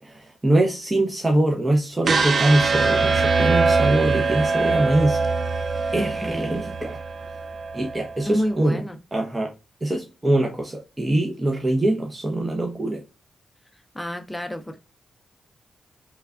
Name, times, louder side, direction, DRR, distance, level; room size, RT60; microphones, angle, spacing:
voice 1, 0.0-5.2 5.9-7.0 7.7-8.8 9.1-9.5 9.8-13.0, right 1 dB, 25° right, 0.7 m, -23 dB
sound 1, 2.0-8.1, right 4 dB, 55° right, 0.4 m, -22 dB
voice 2, 6.0-6.6 8.2-9.0 13.9-14.8, equal, 10° left, 0.6 m, -29 dB
3.2 x 2.3 x 2.3 m
supercardioid pair, 55°, 0 cm